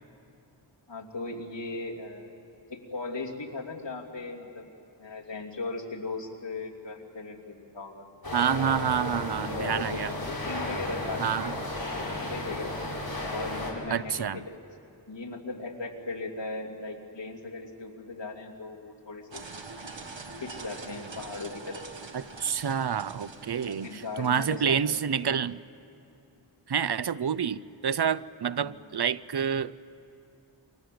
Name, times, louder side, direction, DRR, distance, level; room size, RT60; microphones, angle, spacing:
voice 1, 0.9-2.3 2.7-4.7 5.0-8.0 9.4-11.8 12.1-12.7 13.3-14.6 15.1-19.5 20.4-21.8 23.6-25.4 28.6-28.7, left 3 dB, 70° left, 0 dB, 2.9 m, -38 dB
sound 1, 8.2-13.7, left 1 dB, 50° left, 5.9 m, -34 dB
voice 2, 8.3-10.1 11.2-11.5 13.9-14.4 22.1-25.6 26.7-29.7, right 7 dB, 60° right, 18 dB, 0.7 m, -28 dB
sound 2, 19.3-25.1, right 3 dB, 80° right, 1.7 m, -44 dB
28.5 x 25.0 x 7.8 m, 2.8 s
wide cardioid pair, 45°, 44 cm